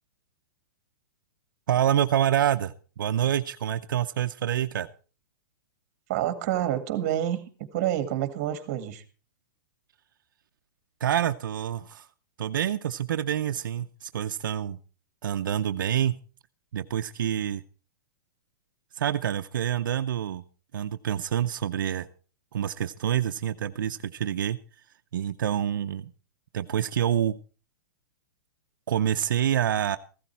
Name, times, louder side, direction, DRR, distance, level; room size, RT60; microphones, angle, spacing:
voice 1, 1.7-4.9 11.0-12.1 12.4-14.8 15.2-16.2 16.7-17.6 18.9-20.4 20.7-22.1 22.5-24.6 25.1-26.1 26.5-27.4 28.9-30.0, right 10 dB, 85° right, 8 dB, 0.7 m, -27 dB
voice 2, 6.1-7.4 7.7-9.0, right 12 dB, 35° right, 10 dB, 2.0 m, -28 dB
15.5 x 12.5 x 4.5 m, 0.36 s
supercardioid pair, 165°, 11 cm